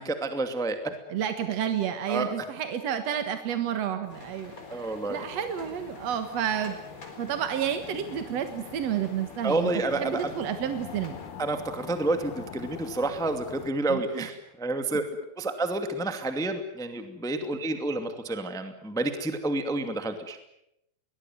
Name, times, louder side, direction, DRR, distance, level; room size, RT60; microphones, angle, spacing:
voice 1, 0.0-0.9 2.1-2.3 4.7-5.2 9.4-10.3 11.4-15.0 15.4-20.4, right 2 dB, 5° left, 7 dB, 0.7 m, -29 dB
voice 2, 1.1-4.5 5.1-6.8 7.2-9.7 10.0-11.2 13.9-14.3, right 9 dB, 55° right, 8 dB, 1.9 m, -30 dB
sound 1, 4.1-13.7, left 9 dB, 65° left, 3.6 m, -45 dB
sound 2, 4.1-11.3, left 2 dB, 20° left, 4.6 m, -49 dB
23.0 x 20.5 x 9.4 m, 0.82 s
omnidirectional pair, 4.9 m